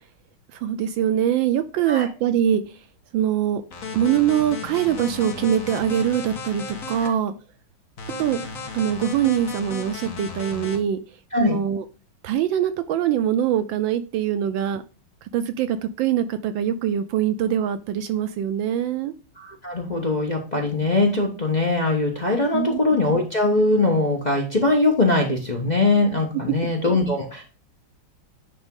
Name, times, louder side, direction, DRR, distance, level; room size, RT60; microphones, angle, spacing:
voice 1, 0.5-2.8 3.1-3.6 3.9-7.3 8.2-8.4 8.7-11.0 11.4-11.8 12.2-14.8 15.2-19.1 22.5-23.0 26.5-26.6, right 10 dB, 75° right, 10 dB, 1.2 m, -23 dB
sound 1, 3.7-7.1 8.0-10.8, left 4 dB, 45° left, 1.4 m, -34 dB
voice 2, 19.4-27.4, left 2 dB, 30° left, 0 dB, 0.9 m, -21 dB
10.0 x 3.6 x 3.7 m, 0.36 s
omnidirectional pair, 2.3 m